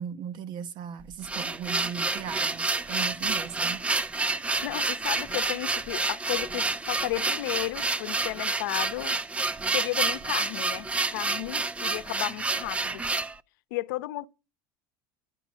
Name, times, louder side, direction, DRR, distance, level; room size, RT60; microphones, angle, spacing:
voice 1, 0.0-3.8, right 8 dB, 45° right, 1.3 m, -37 dB
sound 1, 1.0-13.4, right 3 dB, 10° right, 0.5 m, -29 dB
voice 2, 4.6-9.2 9.7-13.0 13.7-14.3, left 18 dB, 80° left, 0.8 m, -33 dB
11.5 x 10.0 x 6.2 m
supercardioid pair, 135°, 10 cm